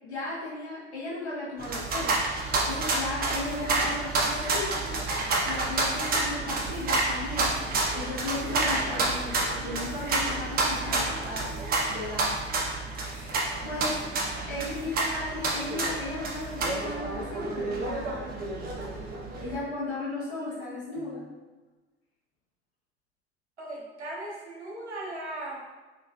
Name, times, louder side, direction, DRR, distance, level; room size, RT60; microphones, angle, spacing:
voice 1, 0.0-2.1 2.6-5.0 5.4-11.5 11.9-12.3 12.9-14.0 14.4-18.4 19.4-21.3, left 2 dB, 80° left, -9 dB, 1.1 m, -36 dB
sound 1, 1.6-19.6, right 2 dB, 30° right, 0.6 m, -29 dB
voice 2, 23.6-25.6, right 1 dB, 90° right, -3 dB, 0.6 m, -37 dB
3.3 x 3.0 x 2.2 m, 1.2 s
figure-of-eight pair, 65°, 33 cm